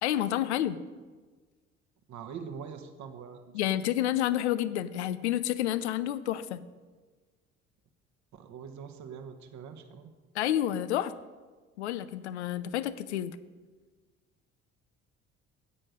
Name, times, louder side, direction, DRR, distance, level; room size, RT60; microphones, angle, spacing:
voice 1, 0.0-0.8 3.5-6.6 10.3-11.1 11.8-13.4, left 12 dB, 85° left, 15 dB, 0.6 m, -29 dB
voice 2, 2.1-3.6 8.3-10.1, right 6 dB, 60° right, 7 dB, 1.4 m, -43 dB
13.0 x 9.0 x 5.2 m, 1.4 s
hypercardioid pair, 55°, 33 cm